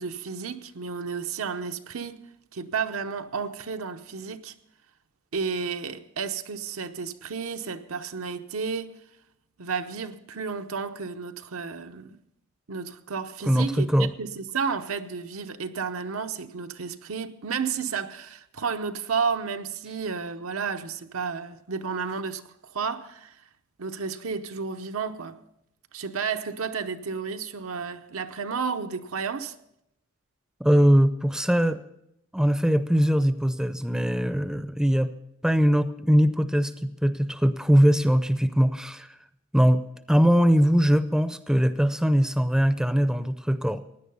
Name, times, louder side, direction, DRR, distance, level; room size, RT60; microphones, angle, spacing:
voice 1, 0.0-2.2 2.5-4.5 5.3-8.9 9.6-12.2 12.7-23.4 23.8-25.4 25.9-29.5, right 5 dB, 85° right, 0.8 m, -32 dB
voice 2, 13.5-14.1 30.6-31.8 32.3-35.1 35.4-39.1 39.5-39.8 40.1-43.8, equal, 5° right, 0.5 m, -21 dB
16.0 x 10.0 x 5.5 m
head